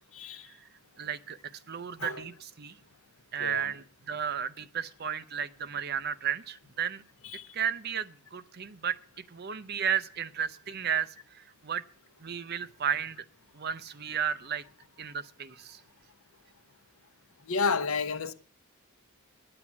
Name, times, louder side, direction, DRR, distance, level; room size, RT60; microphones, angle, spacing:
voice 1, 0.1-0.5 2.0-2.3 3.4-3.7 7.2-7.5 17.5-18.3, left 4 dB, 70° left, 0.8 m, -31 dB
voice 2, 1.0-1.4 1.7-2.8 3.3-7.0 7.5-9.0 9.3-11.8 12.2-13.2 13.5-14.6 15.0-15.8, right 8 dB, 45° right, 0.5 m, -33 dB
9.7 x 8.9 x 7.0 m
head